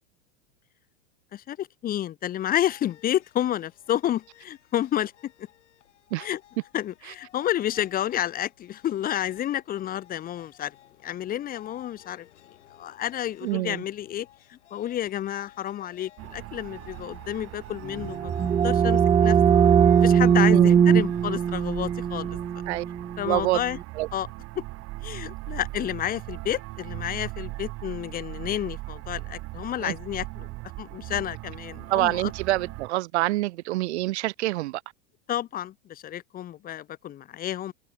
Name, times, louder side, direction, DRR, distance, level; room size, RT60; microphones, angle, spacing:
voice 1, 1.3-5.5 6.2-6.4 6.7-10.7 11.0-12.3 12.7-19.4 20.0-22.4 23.2-23.8 24.1-24.3 24.6-24.7 25.0-30.5 30.8-32.3 35.3-37.7, left 11 dB, 25° left, 0.9 m, -30 dB
sound 1, 2.6-21.9, left 12 dB, 85° left, 7.8 m, -56 dB
voice 2, 13.4-13.8 20.5-20.8 22.7-22.8 23.2-23.6 23.9-24.1 29.8-30.0 31.9-34.8, right 18 dB, 70° right, 0.9 m, -26 dB
sound 2, 16.2-32.9, right 20 dB, 40° right, 1.7 m, -39 dB
sound 3, 17.9-23.5, right 8 dB, 15° right, 0.6 m, -20 dB
supercardioid pair, 130°, 35 cm